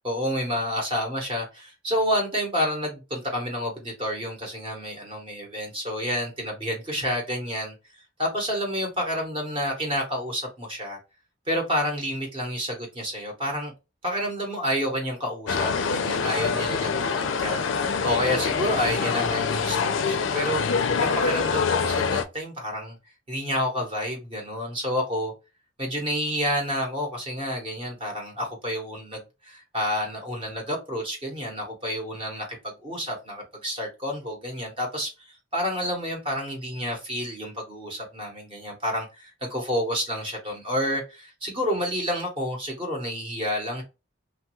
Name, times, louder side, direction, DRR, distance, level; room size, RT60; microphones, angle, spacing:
voice 1, 0.0-7.7 8.2-11.0 11.5-13.7 14.0-20.6 21.0-23.0 23.3-25.3 25.8-32.4 32.8-35.1 35.5-43.8, equal, 25° right, 0.9 m, -29 dB
sound 1, 15.5-22.2, left 5 dB, 70° left, 0.4 m, -25 dB
3.0 x 2.3 x 2.9 m
head